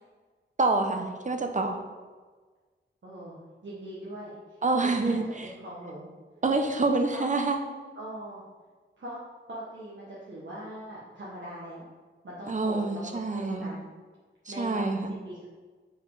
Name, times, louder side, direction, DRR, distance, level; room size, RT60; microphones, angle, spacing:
voice 1, 0.6-1.8 4.6-5.5 6.4-7.6 12.5-13.7 14.5-15.1, right 3 dB, 35° right, 5 dB, 0.7 m, -27 dB
voice 2, 3.0-4.3 4.8-6.1 7.1-7.3 7.9-8.4 9.0-9.2 9.5-11.8 12.2-13.8 14.5-14.9 15.2-15.5, equal, 65° right, -7 dB, 1.3 m, -41 dB
4.9 x 4.8 x 4.8 m, 1.4 s
wide cardioid pair, 95°, 21 cm